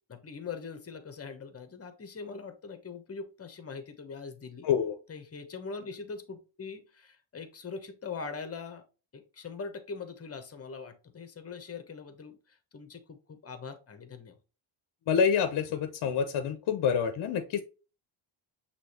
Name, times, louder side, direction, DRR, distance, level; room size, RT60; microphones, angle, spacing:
voice 1, 0.1-4.7 5.1-8.8 9.1-12.4 12.7-14.3, left 5 dB, 30° left, 9 dB, 0.9 m, -42 dB
voice 2, 4.6-5.0 15.1-17.6, left 7 dB, 55° left, 8 dB, 0.7 m, -27 dB
6.1 x 3.0 x 2.8 m, 0.33 s
cardioid pair, 80°, 49 cm